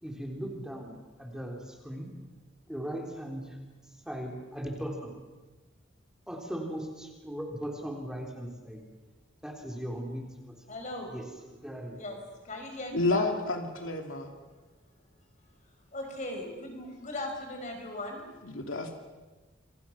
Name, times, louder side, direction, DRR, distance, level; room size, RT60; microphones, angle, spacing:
voice 1, 0.0-2.1 2.7-3.6 4.0-5.1 6.3-8.8 9.4-10.6 11.1-11.3 11.5-12.0, equal, 5° right, 0 dB, 3.8 m, -38 dB
voice 2, 10.7-11.1 11.9-13.3 14.6-14.7 15.5-18.3, left 1 dB, 40° left, 3 dB, 5.8 m, -39 dB
voice 3, 12.9-14.3 18.5-18.9, left 2 dB, 85° left, 4 dB, 2.6 m, -30 dB
28.5 x 24.5 x 6.1 m, 1.2 s
head